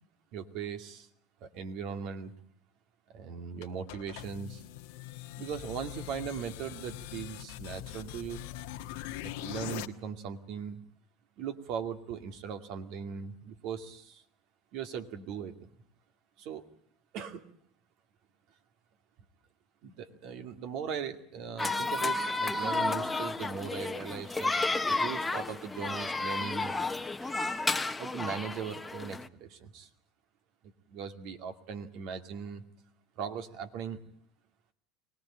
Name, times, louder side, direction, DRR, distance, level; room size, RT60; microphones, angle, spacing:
voice 1, 0.3-1.1 1.4-2.3 3.1-4.6 5.4-8.4 9.2-10.8 11.4-14.2 14.7-15.5 16.4-16.7 17.1-17.5 19.8-24.5 24.8-26.8 28.0-29.9 30.9-32.6 33.2-34.0, right 7 dB, 60° right, 7 dB, 2.4 m, -39 dB
sound 1, 3.6-9.9, left 13 dB, 75° left, 1.3 m, -42 dB
sound 2, 21.6-29.3, left 3 dB, 15° left, 1.1 m, -32 dB
Squeak, 23.0-28.0, right 5 dB, 45° right, 7.4 m, -58 dB
24.0 x 18.5 x 8.9 m, 0.64 s
hypercardioid pair, 90°, 0 cm